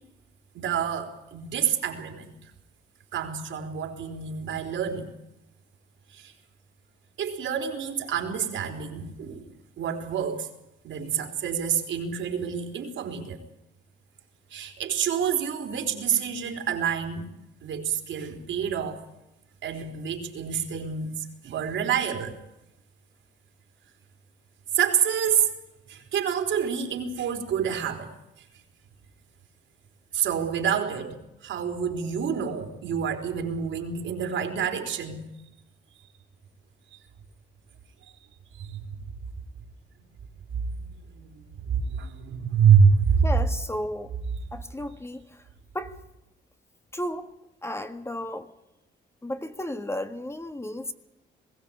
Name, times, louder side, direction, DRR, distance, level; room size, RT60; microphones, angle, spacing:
voice 1, 0.5-2.3 3.1-5.1 6.1-6.3 7.2-9.5 9.8-10.5 10.8-13.4 14.5-17.3 17.6-19.0 19.6-22.4 24.7-25.5 25.9-28.1 30.1-35.2 38.6-38.8 40.5-40.6 41.1-41.3 41.7-43.3, right 7 dB, 75° right, 5 dB, 4.0 m, -27 dB
voice 2, 43.2-44.1 44.5-45.4 45.7-46.0 46.9-47.3 47.6-48.5 49.2-50.9, left 1 dB, 15° left, 8 dB, 1.7 m, -33 dB
21.0 x 16.0 x 8.8 m, 0.90 s
cardioid pair, 90°, 20 cm